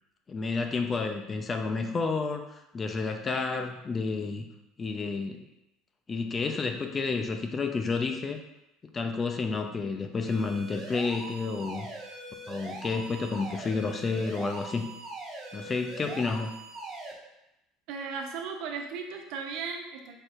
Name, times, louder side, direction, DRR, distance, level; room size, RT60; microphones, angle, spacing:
voice 1, 0.3-4.5 4.8-5.4 6.1-8.4 8.9-11.9 12.5-14.9 15.5-16.5, left 4 dB, 30° left, 5 dB, 0.5 m, -30 dB
sound 1, 10.3-17.1, right 2 dB, 50° right, 1.3 m, -42 dB
voice 2, 17.9-20.1, right 5 dB, 70° right, 4 dB, 0.7 m, -36 dB
4.5 x 4.2 x 2.5 m, 0.90 s
hypercardioid pair, 80°, 0 cm